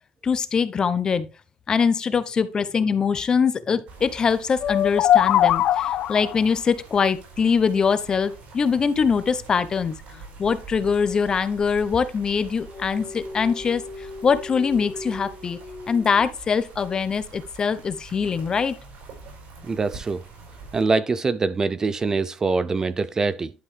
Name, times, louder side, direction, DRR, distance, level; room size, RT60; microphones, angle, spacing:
voice 1, 0.2-1.3 1.7-10.0 10.4-15.6 15.9-18.8, left 6 dB, 30° left, 0.9 m, -23 dB
sound 1, 3.9-20.8, right 4 dB, 70° right, 5.1 m, -45 dB
sound 2, 4.6-6.4, left 11 dB, 60° left, 0.4 m, -20 dB
sound 3, 12.7-16.7, left 1 dB, ahead, 1.6 m, -38 dB
voice 2, 19.6-20.2 20.7-23.5, right 4 dB, 25° right, 0.4 m, -24 dB
11.0 x 5.4 x 3.3 m
cardioid pair, 125°, 2 cm